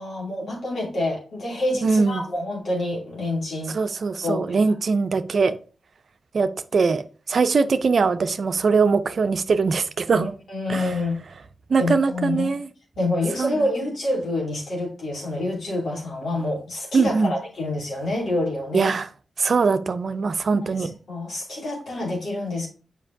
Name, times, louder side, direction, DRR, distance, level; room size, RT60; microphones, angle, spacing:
voice 1, 0.0-3.8 4.2-4.6 10.1-11.2 11.8-12.5 13.0-18.9 20.5-22.7, left 2 dB, 75° left, 2.7 m, -27 dB
voice 2, 1.8-2.2 3.7-5.6 6.3-10.3 10.7-10.8 11.7-12.7 13.4-13.6 16.9-17.3 18.7-19.1 19.4-20.9, right 4 dB, 65° right, 0.5 m, -21 dB
7.4 x 5.3 x 2.7 m
supercardioid pair, 40°, 0 cm